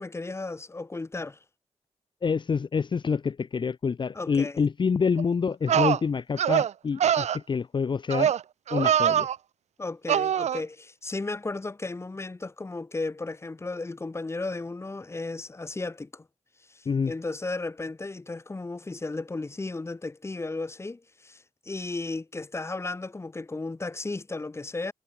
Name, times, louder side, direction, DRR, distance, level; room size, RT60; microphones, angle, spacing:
voice 1, 0.0-1.4 4.1-4.6 9.8-16.3 16.7-24.9, left 3 dB, 25° left, 3.0 m, -34 dB
voice 2, 2.2-8.3 8.7-9.3 16.8-17.1, left 5 dB, 45° left, 1.3 m, -27 dB
sound 1, 5.2-5.3 5.7-6.0 6.4-6.7 7.0-7.4 8.1-8.4 8.7-9.4 10.1-10.6, right 9 dB, 80° right, 1.3 m, -23 dB
cardioid pair, 105°, 11 cm